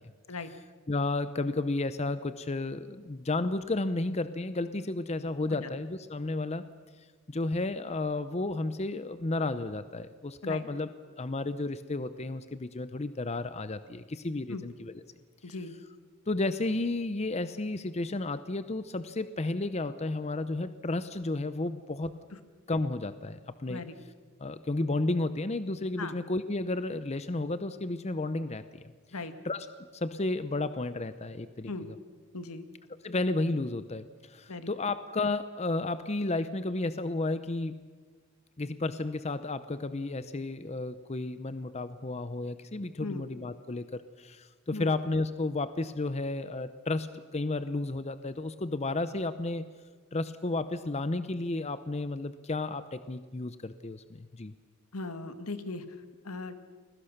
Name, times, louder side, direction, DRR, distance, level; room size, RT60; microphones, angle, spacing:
voice 1, 0.9-6.6 7.0-10.9 11.2-14.9 15.4-15.6 16.3-22.2 22.7-23.8 24.4-28.6 29.4-29.7 29.9-32.0 33.0-37.8 38.6-49.6 50.1-54.5, left 2 dB, 30° left, 12 dB, 0.7 m, -32 dB
voice 2, 15.4-15.7 23.7-23.9 26.0-26.2 29.1-29.3 31.7-31.9 32.3-32.6 34.5-34.7 43.0-43.3 44.7-44.9 54.9-55.8 56.2-56.6, left 3 dB, 75° left, 9 dB, 1.8 m, -38 dB
30.0 x 22.0 x 6.7 m, 1.5 s
head